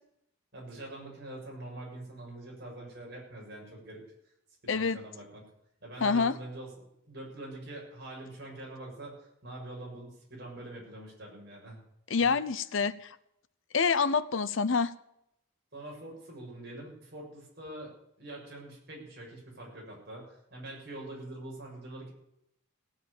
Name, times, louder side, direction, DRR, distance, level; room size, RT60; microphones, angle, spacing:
voice 1, 0.5-4.0 4.6-5.4 5.8-11.8 12.2-12.3 15.7-17.9 18.2-22.1, right 1 dB, 55° right, -2 dB, 7.0 m, -44 dB
voice 2, 4.7-5.0 6.0-6.4 12.1-13.1 13.7-14.9, left 5 dB, 70° left, 15 dB, 0.8 m, -27 dB
17.5 x 9.6 x 6.9 m, 0.78 s
head